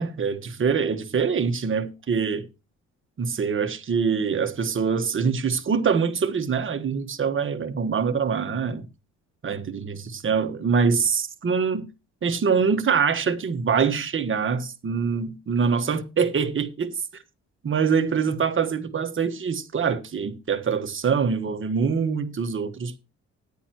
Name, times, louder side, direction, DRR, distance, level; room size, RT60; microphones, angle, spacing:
voice 1, 0.0-2.4 3.2-8.9 9.4-9.9 10.2-11.9 12.2-16.9 17.6-23.0, right 6 dB, 40° right, 1.5 m, -24 dB
13.5 x 10.5 x 3.0 m
cardioid pair, 90°, 30 cm